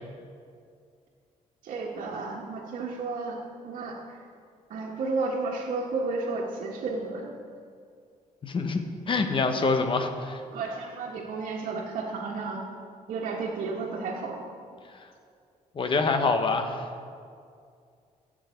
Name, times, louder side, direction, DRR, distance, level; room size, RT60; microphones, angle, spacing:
voice 1, 1.6-4.3 4.7-7.3 10.5-12.7 13.1-14.5, right 3 dB, 75° right, -5 dB, 1.5 m, -32 dB
voice 2, 8.4-10.4 15.7-16.9, left 3 dB, 40° left, 6 dB, 1.1 m, -26 dB
15.5 x 7.6 x 4.5 m, 2.3 s
cardioid pair, 110°, 14 cm